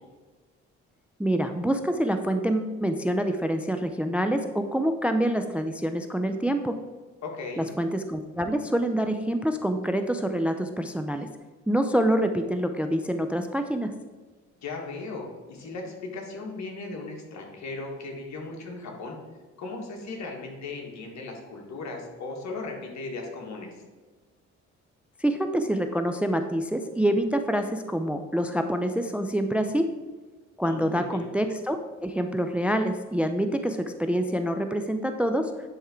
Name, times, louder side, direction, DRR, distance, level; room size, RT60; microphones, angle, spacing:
voice 1, 1.2-6.8 7.6-11.3 11.7-13.9 25.2-29.9 30.6-35.5, right 1 dB, 5° right, 8 dB, 0.4 m, -26 dB
voice 2, 7.2-7.7 14.6-19.2 19.6-23.7 30.6-31.3, left 3 dB, 65° left, 0 dB, 1.8 m, -37 dB
10.0 x 3.6 x 4.4 m, 1.4 s
cardioid pair, 90°, 30 cm